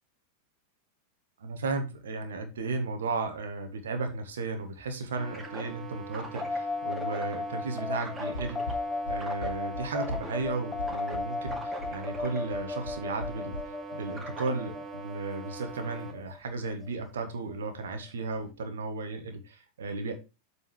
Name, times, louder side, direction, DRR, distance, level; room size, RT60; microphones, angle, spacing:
voice 1, 1.4-8.8 9.1-13.6 13.9-20.1, right 3 dB, 65° right, 6 dB, 1.7 m, -34 dB
sound 1, 5.2-16.1, right 3 dB, 15° right, 2.3 m, -42 dB
sound 2, 6.4-17.2, left 3 dB, 10° left, 0.4 m, -36 dB
sound 3, 8.3-13.6, left 2 dB, 70° left, 1.8 m, -39 dB
7.8 x 5.1 x 4.9 m, 0.28 s
figure-of-eight pair, 90°, 0 cm